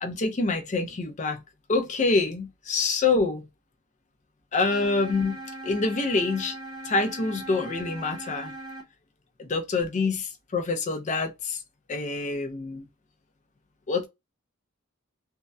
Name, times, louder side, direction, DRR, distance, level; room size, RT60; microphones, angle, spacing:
voice 1, 0.0-1.4 1.7-3.5 4.5-6.6 6.8-8.5 9.4-11.6 11.9-12.9 13.9-14.1, left 3 dB, 35° left, 0.5 m, -26 dB
sound 1, 4.7-8.8, right 1 dB, 20° right, 0.8 m, -40 dB
2.6 x 2.0 x 2.2 m
head